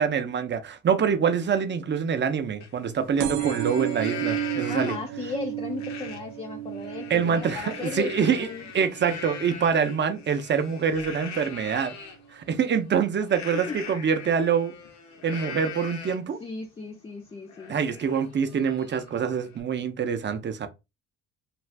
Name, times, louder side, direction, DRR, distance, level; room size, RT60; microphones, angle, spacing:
voice 1, 0.0-5.0 7.1-8.5 8.7-11.9 12.3-14.7 15.2-16.4 17.7-20.7, right 7 dB, 35° right, 0.6 m, -25 dB
Livestock farm animals working animals, 2.6-2.7 3.1-5.2 5.8-6.2 6.6-12.2 13.3-16.4 16.8-16.9 17.2-19.6, left 6 dB, 65° left, 0.9 m, -41 dB
sound 1, 3.2-10.4 10.9-11.4 12.2-12.3 12.6-12.7 12.9-13.0, right 12 dB, 85° right, 0.5 m, -34 dB
voice 2, 4.7-8.7 13.5-13.8 16.4-17.7, left 5 dB, 20° left, 0.4 m, -36 dB
2.5 x 2.4 x 3.3 m
cardioid pair, 90°, 30 cm